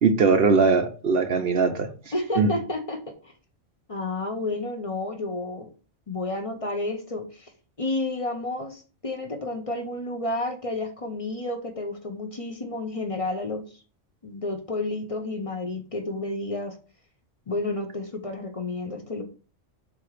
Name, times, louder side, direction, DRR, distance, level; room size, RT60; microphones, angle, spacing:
voice 1, 0.0-1.9 2.4-2.5, right 4 dB, 55° right, 7 dB, 0.9 m, -20 dB
voice 2, 2.1-3.3 3.9-5.7 6.1-7.5 7.8-13.6 14.2-16.8 17.5-19.2, left 2 dB, 30° left, 5 dB, 0.8 m, -31 dB
7.6 x 3.0 x 4.8 m, 0.37 s
omnidirectional pair, 1.3 m